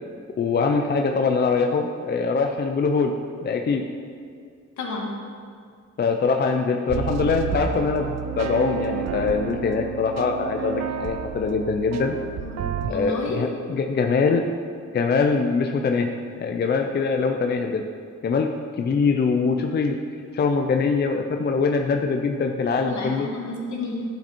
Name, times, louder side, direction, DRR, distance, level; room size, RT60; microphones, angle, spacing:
voice 1, 0.4-3.1 3.4-3.8 6.0-12.2 12.9-14.5 14.9-16.1 16.4-17.8 18.2-20.0 20.3-23.3, left 4 dB, 35° left, 4 dB, 0.5 m, -23 dB
voice 2, 4.8-5.1 12.4-12.6 12.9-13.4 22.8-24.0, left 2 dB, 70° left, -2 dB, 1.8 m, -30 dB
sound 1, 6.9-12.9, right 8 dB, 60° right, 0.6 m, -30 dB
12.0 x 5.2 x 4.4 m, 2.2 s
wide cardioid pair, 145°, 30 cm